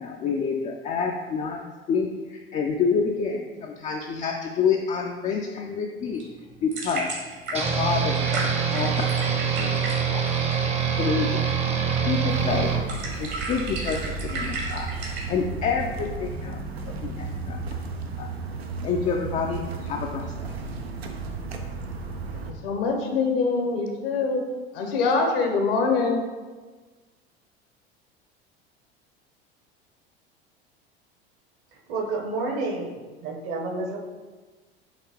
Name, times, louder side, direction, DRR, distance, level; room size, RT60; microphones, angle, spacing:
voice 1, 0.0-1.6 1.9-6.2 6.6-7.1 7.5-9.3 9.6-9.7 10.1-10.2 11.0-11.4 12.1-12.7 13.2-14.9 15.3-16.6 16.9-17.6 18.2-18.3 18.8-20.5, left 5 dB, 25° left, 0 dB, 0.4 m, -28 dB
sound 1, 6.0-15.3, right 3 dB, 65° right, 1.5 m, -35 dB
sound 2, 7.5-12.8, right 7 dB, 20° right, 0.7 m, -24 dB
sound 3, 12.3-22.5, right 4 dB, 85° right, 0.5 m, -34 dB
voice 2, 22.3-24.4 24.7-26.2, left 4 dB, 65° left, 3 dB, 0.9 m, -24 dB
voice 3, 31.9-32.9 33.2-34.0, right 3 dB, 45° right, 2 dB, 0.9 m, -29 dB
5.7 x 2.9 x 2.9 m, 1.3 s
figure-of-eight pair, 75°, 30 cm